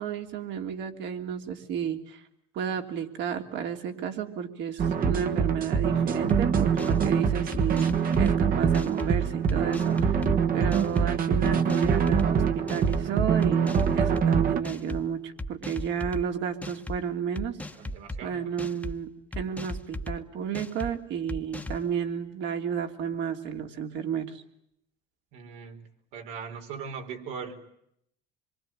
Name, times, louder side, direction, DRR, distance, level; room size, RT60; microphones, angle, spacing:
voice 1, 0.0-2.2 2.5-10.2 10.5-17.6 18.2-24.4, right 8 dB, 65° right, 5 dB, 3.1 m, -32 dB
sound 1, 4.8-14.6, right 6 dB, 45° right, 1.5 m, -24 dB
sound 2, 6.3-6.4 6.8-7.2 7.5-8.4 8.7-9.1 9.5-10.3 10.7-11.1 11.4-12.3 12.7-13.0 13.4-14.3 14.6-15.0 15.4-16.2 16.6-17.0 17.3-18.2 18.6-18.9 19.3-20.2 20.5-20.9 21.3-21.8, left 1 dB, 5° left, 1.3 m, -36 dB
voice 2, 17.7-18.5 25.3-25.8 26.1-27.6, right 6 dB, 80° right, 3 dB, 4.7 m, -39 dB
26.0 x 23.5 x 9.0 m, 0.74 s
supercardioid pair, 105°, 20 cm